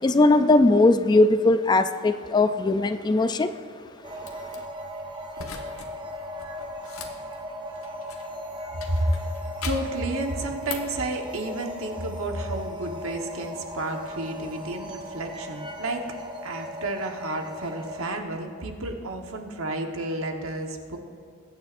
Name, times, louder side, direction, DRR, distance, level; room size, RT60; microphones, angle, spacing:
voice 1, 0.0-3.5, left 2 dB, 20° left, 11 dB, 0.3 m, -19 dB
sound 1, 4.0-18.1, equal, 20° right, 0.9 m, -38 dB
sound 2, 4.2-4.6 5.3-5.9 6.2-8.4 8.8-10.0 10.4-11.0, left 6 dB, 85° left, 1.2 m, -40 dB
voice 2, 8.8-9.3 9.6-16.1 16.4-21.0, right 1 dB, 75° right, 4 dB, 1.2 m, -31 dB
21.5 x 9.0 x 2.5 m, 2.4 s
head